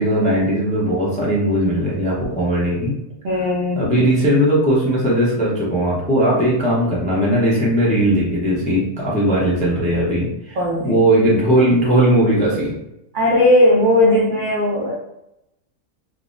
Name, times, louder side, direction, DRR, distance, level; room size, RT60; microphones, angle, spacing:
voice 1, 0.0-3.0 3.7-10.6 10.8-12.7, right 1 dB, 10° left, -6 dB, 0.4 m, -18 dB
voice 2, 3.2-3.9 10.5-10.9 13.1-14.9, left 1 dB, 65° right, -4 dB, 0.5 m, -16 dB
3.4 x 2.0 x 2.5 m, 0.85 s
omnidirectional pair, 1.5 m